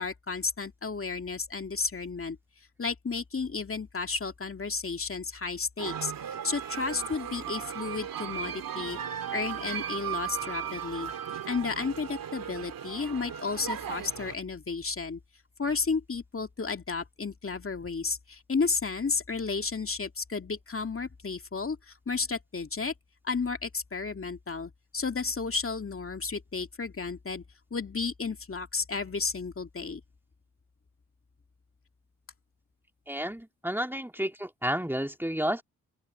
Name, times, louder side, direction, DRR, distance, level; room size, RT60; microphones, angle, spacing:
voice 1, 0.0-2.4 2.8-9.0 9.3-15.2 15.6-22.9 23.2-27.4 27.7-30.0, left 4 dB, 40° left, 2.5 m, -32 dB
sound 1, 5.8-14.3, right 9 dB, 85° right, 2.9 m, -36 dB
voice 2, 33.1-35.6, equal, 5° right, 2.7 m, -31 dB
open air
supercardioid pair, 40°, 33 cm